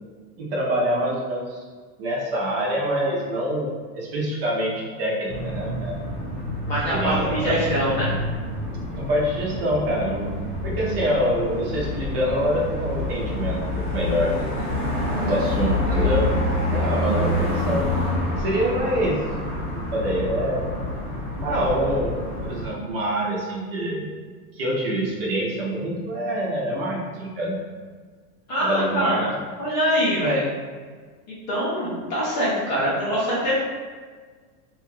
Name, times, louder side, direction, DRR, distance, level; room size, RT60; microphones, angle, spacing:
voice 1, 0.4-1.6 2.0-5.9 6.9-7.6 8.9-13.6 13.9-14.5 15.2-17.9 18.3-19.2 19.7-20.7 21.4-24.1 24.5-27.6 28.6-29.2 30.2-30.4, equal, 40° right, -3 dB, 0.5 m, -25 dB
sound 1, 5.3-22.7, left 1 dB, 15° left, 0.7 m, -27 dB
voice 2, 6.7-8.1 28.5-29.3 29.6-30.4 31.3-33.5, equal, 30° left, -8 dB, 0.4 m, -24 dB
2.8 x 2.3 x 2.9 m, 1.5 s
supercardioid pair, 175°, 46 cm